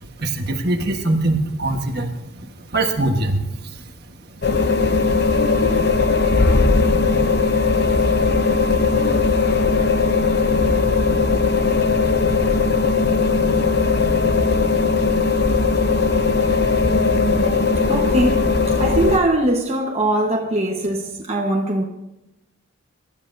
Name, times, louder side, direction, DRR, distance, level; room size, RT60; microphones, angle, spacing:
voice 1, 0.0-3.9 4.4-4.9, right 2 dB, 45° right, 1.4 m, -23 dB
sound 1, 4.4-19.2, left 4 dB, 50° left, 0.8 m, -18 dB
voice 2, 17.9-21.8, right 1 dB, 30° right, 1.3 m, -21 dB
25.0 x 12.5 x 2.7 m
head